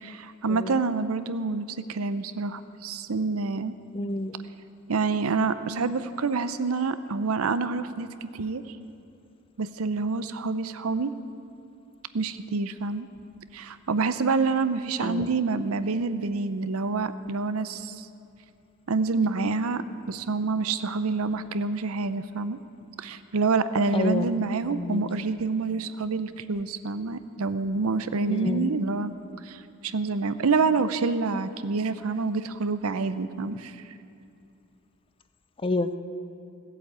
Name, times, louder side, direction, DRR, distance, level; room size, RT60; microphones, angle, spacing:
voice 1, 0.0-3.7 4.9-8.6 9.6-11.1 12.1-13.1 13.5-18.1 18.9-22.6 23.0-29.1 29.4-33.8, right 4 dB, 80° right, 12 dB, 0.6 m, -27 dB
voice 2, 3.9-4.4 15.0-15.3 23.9-24.3 24.7-25.0 28.3-28.7 35.6-36.0, left 2 dB, 25° left, 11 dB, 0.5 m, -28 dB
15.5 x 8.4 x 8.0 m, 2.7 s
head